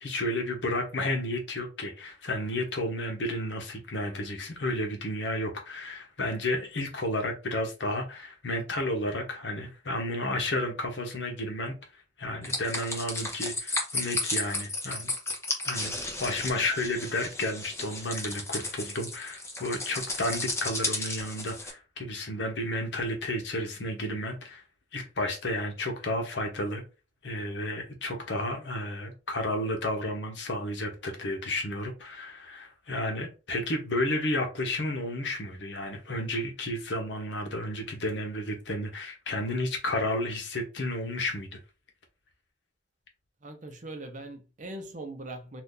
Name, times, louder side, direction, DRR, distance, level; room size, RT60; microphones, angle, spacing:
voice 1, 0.0-11.7 12.2-15.1 15.6-24.6 24.9-26.8 27.2-41.6, left 1 dB, 75° left, 1.0 m, -32 dB
sound 1, 12.4-21.7, left 2 dB, 15° left, 0.7 m, -33 dB
voice 2, 43.4-45.6, right 2 dB, 45° right, 0.7 m, -41 dB
2.7 x 2.5 x 3.7 m
head